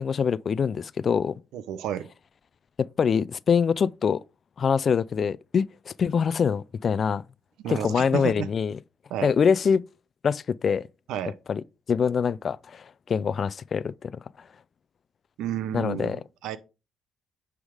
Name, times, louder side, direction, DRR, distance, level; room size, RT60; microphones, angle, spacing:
voice 1, 0.0-1.3 2.8-4.2 4.6-7.2 7.7-8.7 9.2-9.8 10.2-10.9 11.5-11.6 11.9-14.1 15.7-16.2, left 6 dB, 50° left, 0.4 m, -24 dB
voice 2, 1.5-2.1 7.6-8.5 9.1-9.3 11.1-11.3 15.4-16.6, right 10 dB, 90° right, 0.8 m, -31 dB
9.8 x 3.6 x 4.9 m
cardioid pair, 90°, 0 cm